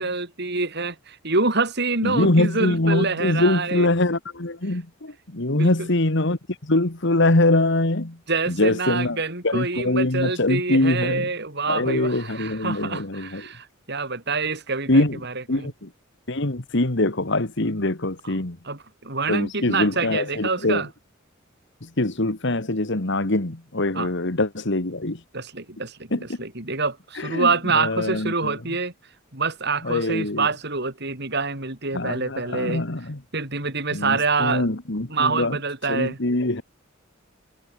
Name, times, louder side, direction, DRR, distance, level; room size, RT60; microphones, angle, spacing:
voice 1, 0.0-3.9 5.5-5.9 8.3-15.7 18.2-18.3 18.6-20.9 23.9-24.1 25.3-28.9 29.3-32.8 33.3-34.7 35.1-36.2, right 4 dB, 55° right, 4.7 m, -26 dB
voice 2, 2.0-8.2 8.5-9.2 9.4-11.3 11.7-13.4 14.9-15.2 15.5-15.9 16.3-18.6 19.3-20.8 21.8-25.2 26.1-26.4 27.2-28.6 29.8-30.5 31.9-33.2 33.9-35.6 35.9-36.6, left 2 dB, 60° left, 1.9 m, -23 dB
head